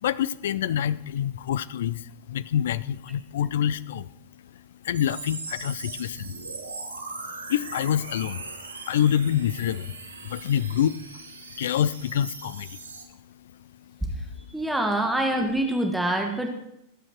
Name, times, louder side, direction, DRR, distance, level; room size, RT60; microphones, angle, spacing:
voice 1, 0.0-4.1 4.8-6.3 7.5-8.4 8.9-10.0 10.2-11.2 11.6-12.8, left 10 dB, 60° left, 19 dB, 0.5 m, -26 dB
sound 1, 4.9-13.0, right 3 dB, 75° right, 1.8 m, -40 dB
voice 2, 14.5-16.5, right 1 dB, 5° right, 2 dB, 1.7 m, -25 dB
19.5 x 9.0 x 4.6 m, 0.82 s
figure-of-eight pair, 90°, 0 cm